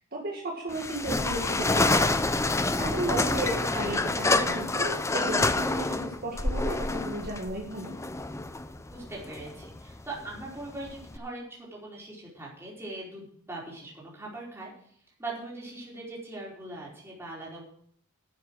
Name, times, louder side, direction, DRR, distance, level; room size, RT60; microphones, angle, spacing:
voice 1, 0.0-2.2 2.8-8.0, right 1 dB, 40° right, -1 dB, 1.9 m, -34 dB
sound 1, 0.7-11.2, left 2 dB, 15° left, 0.5 m, -28 dB
voice 2, 8.9-14.7 15.2-17.6, right 2 dB, 10° right, -5 dB, 4.7 m, -41 dB
12.0 x 7.3 x 6.3 m, 0.62 s
head